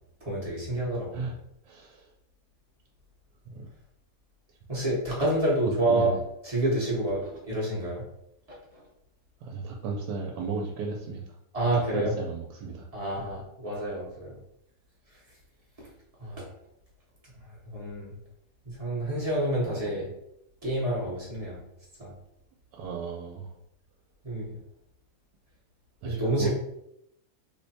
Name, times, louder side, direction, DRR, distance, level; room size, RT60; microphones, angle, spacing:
voice 1, 0.2-1.3 4.7-6.1 6.4-8.0 8.7-8.8 11.5-12.1 12.9-14.4 15.8-15.9 16.2-16.5 17.6-18.2 18.6-20.1 20.6-21.6 22.0-22.1 24.2-24.6 26.0-26.5, right 1 dB, 30° right, -5 dB, 0.8 m, -28 dB
voice 2, 1.7-2.1 3.5-3.7 5.9-6.2 9.4-11.2 11.9-12.9 13.2-13.3 19.7-19.8 22.7-23.5 26.0-26.5, right 4 dB, 90° right, -1 dB, 1.2 m, -35 dB
3.2 x 2.1 x 4.0 m, 0.80 s
omnidirectional pair, 1.8 m